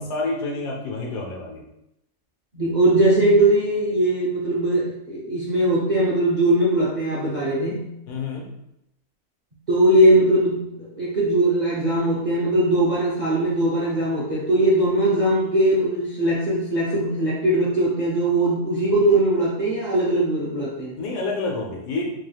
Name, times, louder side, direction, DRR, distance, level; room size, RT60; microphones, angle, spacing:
voice 1, 0.1-1.6 8.1-8.5 21.0-22.0, left 3 dB, 80° left, -1 dB, 1.4 m, -28 dB
voice 2, 2.5-7.9 9.7-21.0, right 1 dB, 50° right, -5 dB, 0.5 m, -20 dB
4.4 x 3.3 x 2.3 m, 0.83 s
omnidirectional pair, 1.7 m